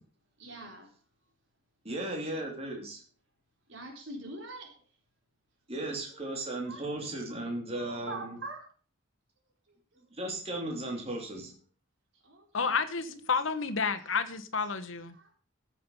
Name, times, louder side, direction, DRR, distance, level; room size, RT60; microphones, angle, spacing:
voice 1, 0.4-0.9 3.7-4.7 6.1-6.2 6.6-6.8 7.7-8.7 9.7-10.1 12.1-13.2 14.0-14.2 15.1-15.3, right 2 dB, 65° right, 4.1 m, -44 dB
voice 2, 1.8-3.0 5.7-8.2 10.1-11.5, right 1 dB, 30° right, 3.1 m, -36 dB
voice 3, 12.5-15.2, left 5 dB, 75° left, 1.3 m, -30 dB
15.0 x 7.7 x 5.5 m
head